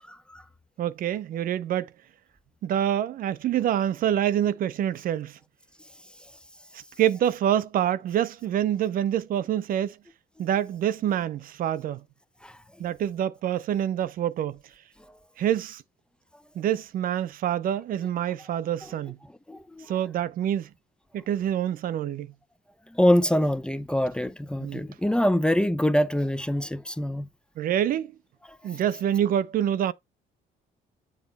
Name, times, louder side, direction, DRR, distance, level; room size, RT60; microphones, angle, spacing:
voice 1, 0.1-0.4 12.4-12.5 19.5-19.9 22.9-27.3, left 1 dB, 5° left, 0.5 m, -24 dB
voice 2, 0.8-1.9 2.6-5.4 6.7-10.0 10.4-12.0 12.8-14.6 15.4-15.8 16.6-19.2 19.9-20.7 21.1-22.3 24.6-24.8 27.6-28.1 28.6-29.9, right 10 dB, 55° right, 0.5 m, -26 dB
7.3 x 3.1 x 5.2 m
cardioid pair, 110°, 17 cm